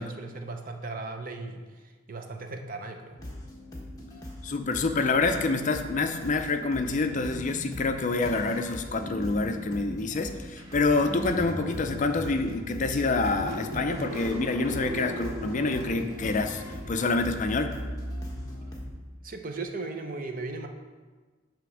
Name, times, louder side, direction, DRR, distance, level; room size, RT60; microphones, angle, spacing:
voice 1, 0.0-3.2 10.9-11.0 19.2-20.7, right 3 dB, 45° right, 5 dB, 0.6 m, -37 dB
sound 1, 3.2-18.9, left 1 dB, 20° left, 1.1 m, -42 dB
voice 2, 4.4-17.8, left 3 dB, 40° left, 7 dB, 0.4 m, -27 dB
sound 2, 7.0-12.9, equal, 65° right, 1.4 m, -43 dB
Car / Engine starting, 10.6-19.3, equal, 90° right, 1.6 m, -38 dB
9.2 x 3.4 x 6.3 m, 1.4 s
head